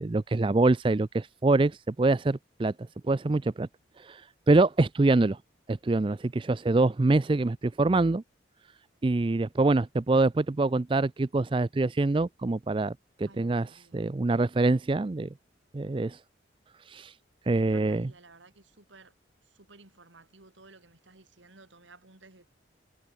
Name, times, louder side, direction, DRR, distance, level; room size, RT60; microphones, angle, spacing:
voice 1, 0.0-2.7 3.0-3.7 4.0-5.4 5.7-8.2 9.0-15.3 15.7-16.2 16.9-17.1 17.5-18.1, right 2 dB, 25° right, 0.4 m, -25 dB
voice 2, 13.3-14.0 17.5-19.1 19.6-22.5, right 3 dB, 80° right, 3.4 m, -55 dB
head